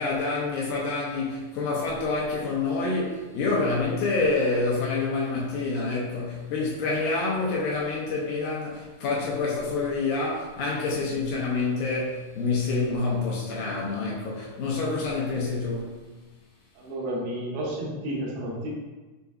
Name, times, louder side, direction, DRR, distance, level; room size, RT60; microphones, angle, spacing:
voice 1, 0.0-15.9, left 3 dB, 80° left, -4 dB, 1.9 m, -27 dB
voice 2, 16.8-18.7, right 1 dB, 80° right, -5 dB, 2.8 m, -31 dB
6.5 x 2.6 x 2.3 m, 1.2 s
omnidirectional pair, 4.4 m